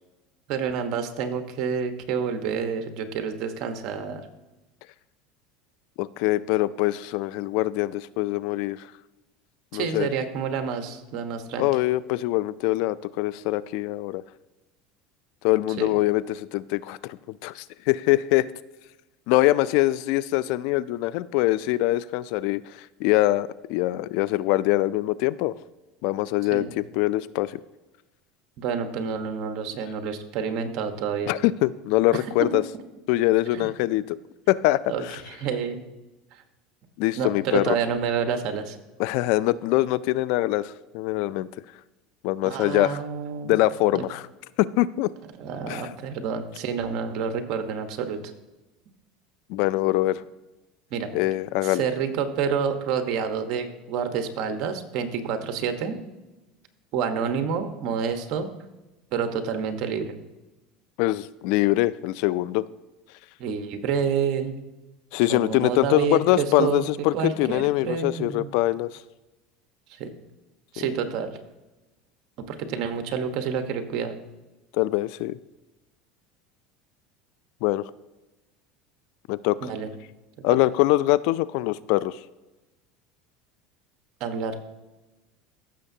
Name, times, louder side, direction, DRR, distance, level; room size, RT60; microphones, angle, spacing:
voice 1, 0.5-4.3 9.7-11.7 15.8-15.9 26.5-26.7 28.6-31.3 32.1-32.6 33.5-33.7 34.9-35.8 36.3-36.4 37.2-38.8 42.4-43.5 43.9-44.0 45.4-48.2 50.9-51.1 51.6-56.0 56.9-58.5 59.1-60.1 63.4-64.6 65.3-66.8 67.1-68.5 69.9-70.1 70.7-71.3 72.4-74.1 79.6-79.9 84.2-84.7, right 6 dB, 55° right, 7 dB, 1.1 m, -28 dB
voice 2, 6.0-8.9 9.7-10.1 11.6-14.2 15.4-17.2 17.4-18.5 19.3-25.5 26.0-27.6 31.3-32.6 33.1-34.2 34.5-35.2 37.0-37.8 39.0-41.5 42.2-43.0 43.4-44.2 44.6-45.1 45.7-45.8 49.5-50.2 51.1-51.8 61.0-62.7 65.1-69.0 70.8-70.9 74.7-75.4 77.6-77.8 79.3-79.7 80.4-82.2, left 17 dB, 65° left, 18 dB, 0.3 m, -23 dB
15.0 x 6.7 x 2.8 m, 1.1 s
supercardioid pair, 130°, 0 cm